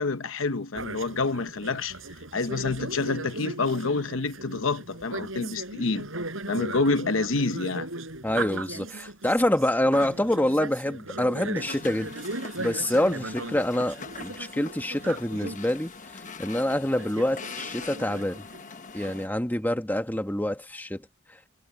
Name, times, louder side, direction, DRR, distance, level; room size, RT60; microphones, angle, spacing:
voice 1, 0.0-2.0 2.3-6.1 6.5-7.9, left 3 dB, 70° left, 0.9 m, -27 dB
sound 1, 0.7-15.7 16.2-16.3 16.5-19.2, right 2 dB, 75° right, 6.7 m, -37 dB
voice 2, 8.2-12.1 12.6-18.4 18.9-21.0, left 1 dB, 10° left, 1.4 m, -26 dB
sound 2, 11.6-19.3, left 5 dB, 40° left, 1.0 m, -42 dB
head